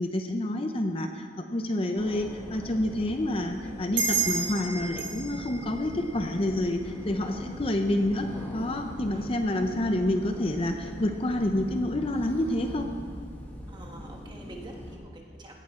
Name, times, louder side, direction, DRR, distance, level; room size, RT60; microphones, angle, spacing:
voice 1, 0.0-8.3 8.5-12.9, left 1 dB, 30° left, 5 dB, 0.6 m, -28 dB
sound 1, 2.0-15.0, equal, 10° left, 1.5 m, -41 dB
sound 2, 4.0-7.1, right 5 dB, 65° right, 2.3 m, -32 dB
voice 2, 13.7-15.6, right 1 dB, 25° right, 0 dB, 1.4 m, -46 dB
17.0 x 10.5 x 3.7 m, 2.1 s
head